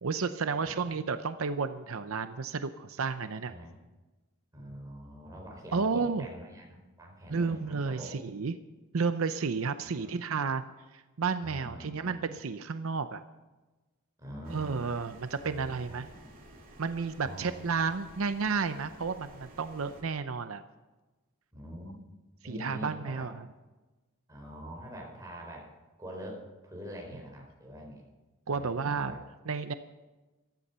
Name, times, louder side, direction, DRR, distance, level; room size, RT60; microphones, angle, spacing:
voice 1, 0.0-3.5 5.7-6.3 7.3-8.5 8.9-10.6 10.9-13.2 14.5-16.1 16.8-20.6 22.4-23.4 28.5-29.1 29.5-29.7, right 5 dB, 80° right, 10 dB, 0.7 m, -32 dB
voice 2, 4.5-8.1 9.8-10.1 11.4-12.1 14.2-14.8 15.4-16.3 17.2-17.6 21.5-22.0 22.4-23.3 24.3-25.7 26.0-28.0 28.5-29.2, equal, 15° right, -1 dB, 4.5 m, -45 dB
sound 1, 14.4-20.0, right 1 dB, 40° right, 2.9 m, -53 dB
15.0 x 13.0 x 5.6 m, 1.2 s
head